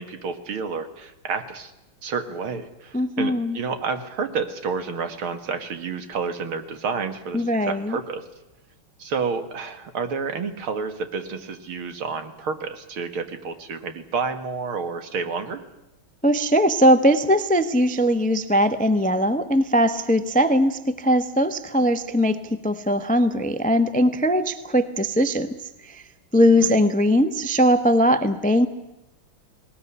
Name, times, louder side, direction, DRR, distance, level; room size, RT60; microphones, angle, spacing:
voice 1, 0.0-1.7 2.0-8.2 9.0-15.6 26.5-26.7, right 5 dB, 75° right, 9 dB, 2.6 m, -30 dB
voice 2, 2.9-3.6 7.3-8.0 16.2-25.5 25.8-26.0 26.3-28.7, equal, 10° left, 11 dB, 0.5 m, -20 dB
19.5 x 19.5 x 9.9 m, 0.93 s
omnidirectional pair, 2.4 m